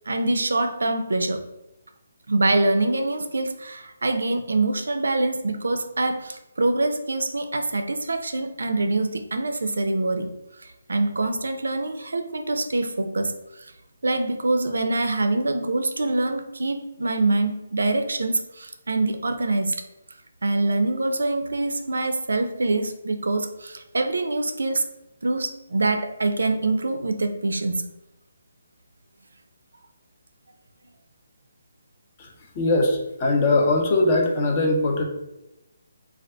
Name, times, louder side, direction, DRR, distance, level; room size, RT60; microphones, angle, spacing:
voice 1, 0.1-1.4 2.3-10.3 10.6-13.7 14.0-19.8 20.4-24.9 25.2-27.9, right 2 dB, 85° right, 7 dB, 0.4 m, -25 dB
voice 2, 32.2-35.0, left 2 dB, 30° left, 0 dB, 0.6 m, -21 dB
2.6 x 2.4 x 3.3 m, 0.92 s
hypercardioid pair, 160°, 0 cm